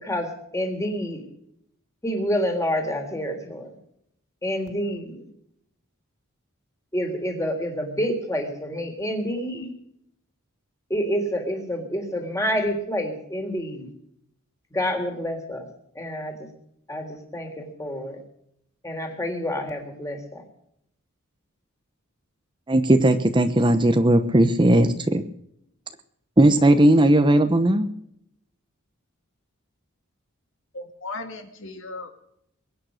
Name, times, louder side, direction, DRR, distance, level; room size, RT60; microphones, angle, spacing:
voice 1, 0.0-1.2 2.0-3.7 4.4-5.2 6.9-9.7 10.9-13.9 14.7-15.7 16.0-16.5 16.9-18.2 18.8-20.4, equal, 15° left, 4 dB, 3.7 m, -28 dB
voice 2, 22.7-25.2 26.4-27.9, right 1 dB, 25° right, 9 dB, 0.9 m, -17 dB
voice 3, 30.7-32.1, left 3 dB, 65° left, 5 dB, 2.4 m, -36 dB
22.5 x 9.5 x 6.4 m, 0.74 s
head